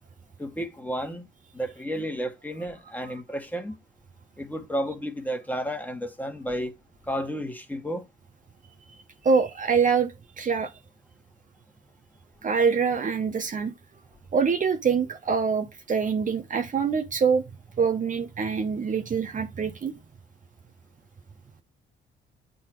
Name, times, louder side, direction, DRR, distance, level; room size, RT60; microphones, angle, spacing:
voice 1, 0.4-1.2 1.5-3.7 4.4-6.7 7.1-8.0, equal, 10° left, 1.7 m, -32 dB
voice 2, 9.2-10.7 12.4-13.7 14.3-17.4 17.8-19.9, right 5 dB, 40° right, 0.9 m, -25 dB
8.5 x 3.9 x 4.7 m
cardioid pair, 90°, 20 cm